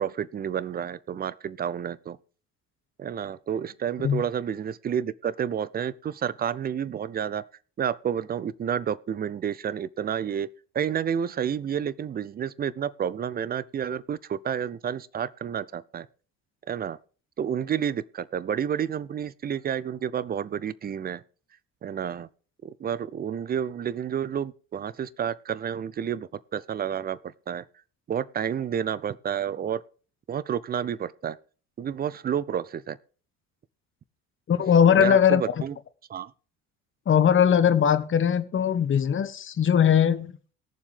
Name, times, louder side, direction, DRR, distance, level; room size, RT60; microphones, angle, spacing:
voice 1, 0.0-2.2 3.0-7.4 7.8-10.5 10.7-16.1 16.7-17.0 17.4-21.2 21.8-22.3 22.6-27.6 28.1-29.8 30.3-31.4 31.8-33.0 35.0-35.7 36.1-36.3, right 8 dB, 25° right, 0.5 m, -30 dB
voice 2, 34.5-35.6 37.1-40.3, left 8 dB, 30° left, 1.0 m, -20 dB
18.5 x 7.1 x 3.4 m
figure-of-eight pair, 55°, 43 cm